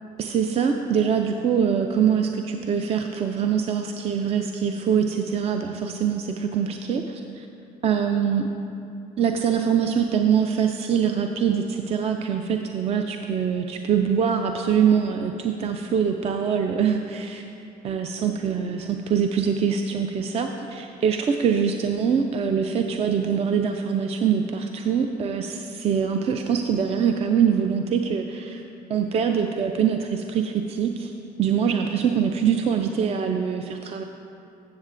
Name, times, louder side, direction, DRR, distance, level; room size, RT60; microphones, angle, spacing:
voice 1, 0.2-7.5 7.8-8.4 9.2-17.4 17.8-28.6 28.9-31.1 31.4-34.0, right 7 dB, 35° right, 5 dB, 0.4 m, -24 dB
13.0 x 7.2 x 2.5 m, 2.7 s
cardioid pair, 110°, 17 cm